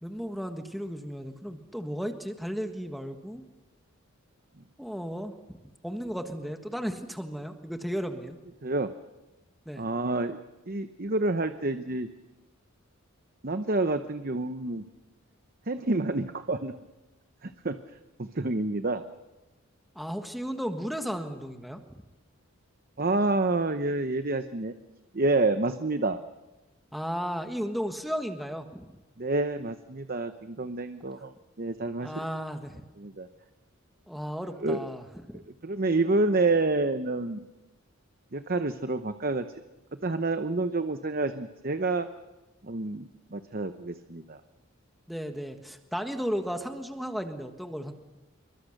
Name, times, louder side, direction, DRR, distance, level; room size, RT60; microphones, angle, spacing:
voice 1, 0.0-3.4 4.8-5.6 5.8-8.3 9.6-9.8 19.9-21.8 26.9-28.9 32.0-32.8 34.1-35.0 45.1-48.0, equal, ahead, 5 dB, 1.5 m, -34 dB
voice 2, 8.6-8.9 9.8-10.4 10.7-12.1 13.4-14.8 15.7-16.7 17.4-17.8 18.2-19.0 23.0-24.7 25.1-26.2 29.2-32.2 33.0-33.3 34.6-34.9 35.3-37.4 38.3-39.5 40.0-42.1 42.6-44.4, right 2 dB, 45° right, 9 dB, 0.9 m, -28 dB
27.0 x 23.0 x 6.6 m, 1.1 s
head